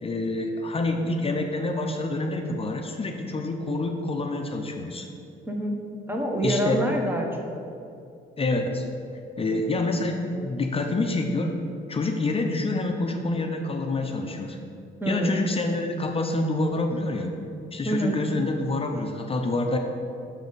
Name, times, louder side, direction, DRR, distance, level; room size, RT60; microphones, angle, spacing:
voice 1, 0.0-5.1 6.4-6.8 8.4-8.9 9.4-11.6 11.9-14.6 15.1-17.3 17.7-19.8, left 2 dB, 30° left, 3 dB, 0.6 m, -27 dB
voice 2, 5.5-5.8 6.1-7.3 15.0-15.4 17.8-18.1, right 1 dB, 10° right, 1 dB, 1.0 m, -26 dB
6.3 x 5.1 x 4.0 m, 2.6 s
cardioid pair, 90°, 20 cm